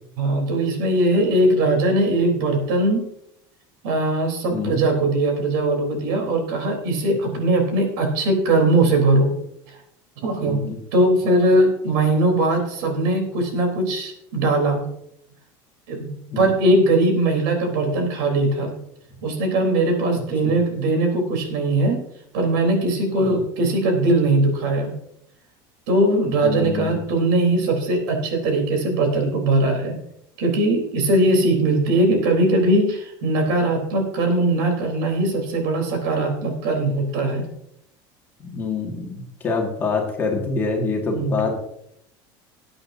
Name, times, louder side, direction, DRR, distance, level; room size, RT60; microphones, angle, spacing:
voice 1, 0.2-3.0 3.8-9.3 10.2-14.8 15.9-16.1 16.4-18.7 19.2-22.0 22.3-24.9 25.9-30.0 30.4-37.5 41.1-41.4, right 2 dB, 75° right, 3 dB, 3.9 m, -20 dB
voice 2, 4.5-4.8 10.4-10.8 16.3-16.5 20.4-20.5 23.2-23.4 26.2-27.0 38.4-41.6, left 4 dB, 20° left, 0 dB, 2.1 m, -26 dB
20.0 x 8.7 x 2.8 m, 0.75 s
cardioid pair, 175°, 11 cm